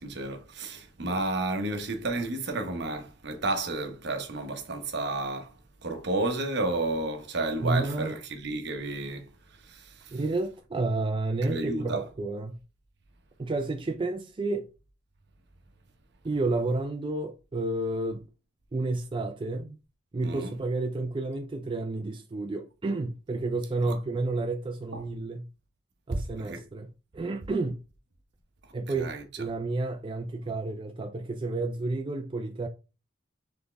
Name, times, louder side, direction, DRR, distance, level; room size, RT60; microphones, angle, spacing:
voice 1, 0.0-10.2 11.4-12.1 20.2-20.5 23.8-24.0 24.9-25.0 26.1-26.7 29.0-29.2, right 2 dB, 65° right, 0.9 m, -32 dB
voice 2, 7.6-8.1 10.1-12.6 13.4-14.7 16.2-18.3 18.7-19.8 20.1-25.5 26.1-27.8 28.7-32.7, right 2 dB, 25° right, 0.4 m, -31 dB
4.1 x 3.4 x 3.3 m
head